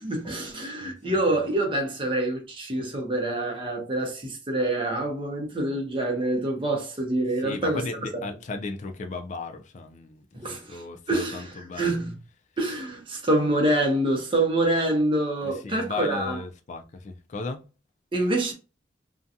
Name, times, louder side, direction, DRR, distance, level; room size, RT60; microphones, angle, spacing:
voice 1, 0.0-7.9 10.3-12.1 12.6-16.4 18.1-18.5, right 1 dB, 30° right, 0.7 m, -26 dB
voice 2, 7.4-10.3 10.5-12.0 15.4-17.6, left 3 dB, 40° left, 0.4 m, -36 dB
2.5 x 2.2 x 2.6 m
head